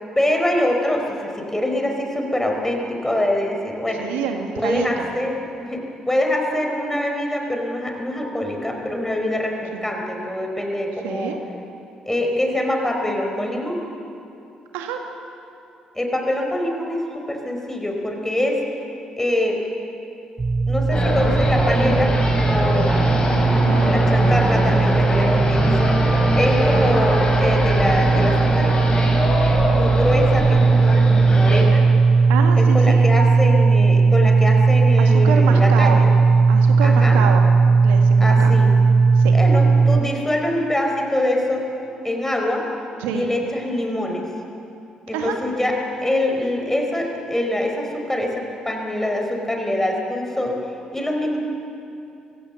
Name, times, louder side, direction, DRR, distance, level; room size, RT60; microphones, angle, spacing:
voice 1, 0.1-4.1 4.6-11.3 12.1-13.8 15.9-18.6 19.2-19.6 20.7-22.1 22.5-23.1 23.9-25.9 26.3-28.7 29.7-31.8 32.6-36.1 36.8-37.2 38.2-38.7 39.3-41.7 42.0-42.6 43.1-44.3 45.1-45.7 46.0-50.6 50.9-51.4, left 1 dB, 10° left, 2 dB, 4.9 m, -24 dB
voice 2, 4.0-4.9 9.7-9.9 11.0-11.4 14.7-15.0 23.2-23.9 32.3-33.1 35.0-36.1 36.5-37.5 37.8-38.6 39.2-39.4 43.0-43.3 45.1-45.4, right 7 dB, 75° right, 4 dB, 1.9 m, -27 dB
sound 1, 20.4-40.0, right 4 dB, 30° right, 0.6 m, -17 dB
sound 2, 20.9-31.6, left 1 dB, 30° left, 6.5 m, -23 dB
24.5 x 16.0 x 7.3 m, 2.7 s
hypercardioid pair, 45°, 3 cm